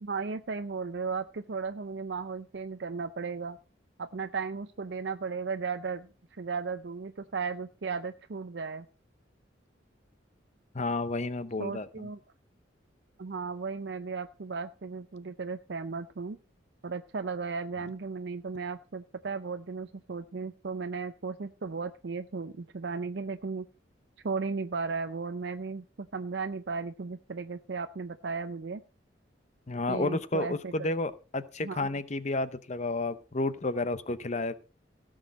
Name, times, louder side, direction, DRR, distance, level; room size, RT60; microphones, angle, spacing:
voice 1, 0.0-3.6 4.0-6.1 6.4-8.9 11.6-12.2 13.2-16.4 16.8-23.7 24.2-28.8 29.9-30.9 31.6-31.9, right 4 dB, 60° right, 9 dB, 0.6 m, -35 dB
voice 2, 10.7-12.1 29.7-34.6, left 2 dB, 40° left, 14 dB, 0.8 m, -31 dB
17.0 x 6.4 x 5.1 m, 0.36 s
head